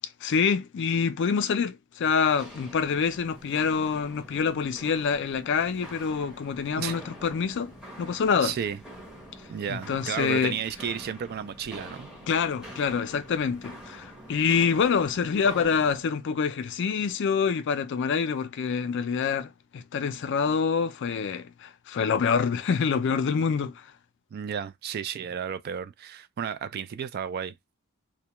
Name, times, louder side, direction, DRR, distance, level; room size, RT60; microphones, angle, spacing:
voice 1, 0.2-7.7 8.0-8.5 9.7-10.6 12.3-23.8, left 6 dB, 60° left, 0.4 m, -26 dB
Walk footsteps, 2.2-16.0, equal, 5° right, 0.7 m, -46 dB
voice 2, 8.4-8.8 9.5-12.1 24.3-27.5, right 8 dB, 50° right, 0.3 m, -33 dB
2.2 x 2.1 x 2.9 m
head